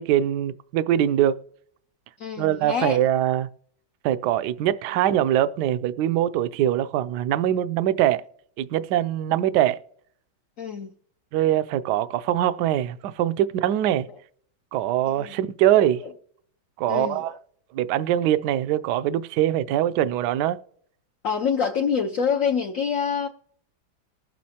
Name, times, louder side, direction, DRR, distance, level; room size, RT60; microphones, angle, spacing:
voice 1, 0.0-1.4 2.4-3.5 4.0-8.2 8.6-9.8 11.3-14.1 14.7-16.0 16.8-17.3 17.7-20.6, right 12 dB, 75° right, 1.0 m, -23 dB
voice 2, 2.2-3.0 10.6-10.9 15.2-15.4 16.0-16.1 16.9-17.4 21.2-23.3, left 6 dB, 80° left, 0.7 m, -26 dB
20.0 x 7.4 x 2.8 m
omnidirectional pair, 2.2 m